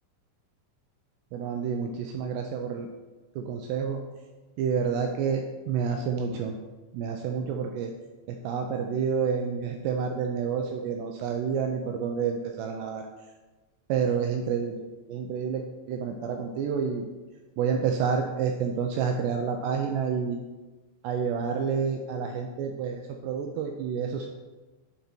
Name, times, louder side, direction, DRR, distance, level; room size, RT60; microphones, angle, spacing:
voice 1, 1.3-2.9 3.4-4.0 4.6-6.5 6.9-7.9 8.4-13.1 13.9-14.8 15.1-17.1 17.6-20.4 21.0-24.3, right 6 dB, 85° right, 3 dB, 2.5 m, -29 dB
12.0 x 4.0 x 4.4 m, 1.2 s
omnidirectional pair, 5.5 m